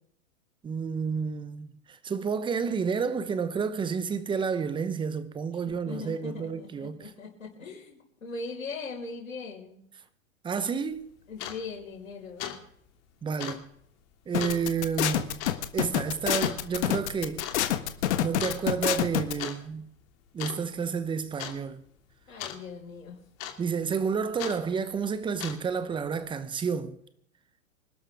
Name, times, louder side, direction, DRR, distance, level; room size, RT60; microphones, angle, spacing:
voice 1, 0.6-7.1 10.4-11.1 13.2-13.6 14.3-15.4 15.7-17.4 18.2-19.9 20.3-21.8 23.6-27.0, right 6 dB, 10° right, 1.0 m, -30 dB
voice 2, 5.7-9.8 11.3-12.6 22.3-23.2, left 4 dB, 85° left, 5.5 m, -40 dB
sound 1, 10.9-11.0 11.3-11.6 12.0-12.1 12.4-12.6 12.9-13.0 13.4-13.6 14.4-14.6 15.4-15.6 16.4-16.6 17.4-17.6 18.4-18.6 19.2-19.6 19.8-20.1 20.4-20.9 21.4-21.6 22.4-22.6 23.4-23.8 24.4-24.6 25.2-25.8, left 10 dB, 35° left, 2.6 m, -37 dB
sound 2, 14.3-19.3, left 12 dB, 55° left, 1.6 m, -26 dB
26.0 x 12.0 x 3.6 m
hypercardioid pair, 115°, 40 cm